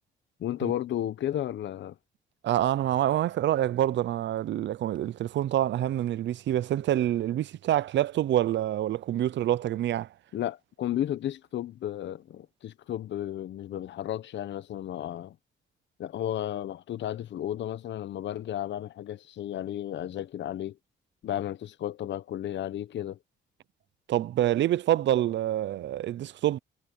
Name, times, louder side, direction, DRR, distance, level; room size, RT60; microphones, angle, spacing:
voice 1, 0.4-2.0 10.3-15.4 16.0-20.8 21.2-23.2, left 11 dB, 65° left, 1.0 m, -33 dB
voice 2, 2.4-10.1 24.1-26.6, right 12 dB, 65° right, 0.6 m, -26 dB
cardioid pair, 90°, 20 cm